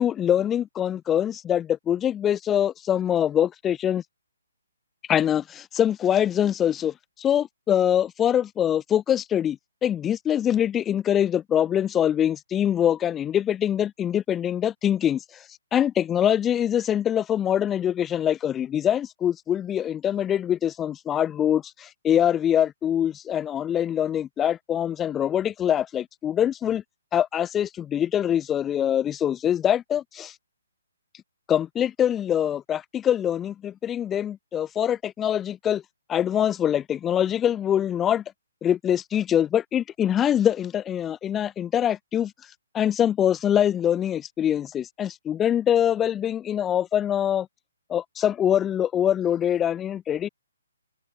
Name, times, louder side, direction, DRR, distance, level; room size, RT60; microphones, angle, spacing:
voice 1, 0.0-4.0 5.1-15.2 15.7-26.8 27.1-30.3 31.5-35.8 36.1-38.2 38.6-42.3 42.7-47.5 47.9-50.3, left 10 dB, 10° left, 0.4 m, -24 dB
hypercardioid pair, 175°, 0 cm